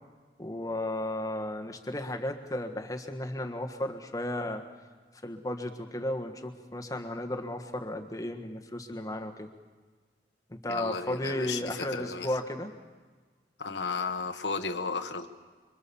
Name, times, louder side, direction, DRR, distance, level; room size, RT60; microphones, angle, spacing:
voice 1, 0.4-4.6 5.2-9.5 10.5-12.7, left 1 dB, 20° left, 4 dB, 1.5 m, -34 dB
voice 2, 10.7-12.3 13.6-15.3, left 4 dB, 85° left, 6 dB, 1.4 m, -34 dB
26.0 x 24.5 x 7.1 m, 1.4 s
head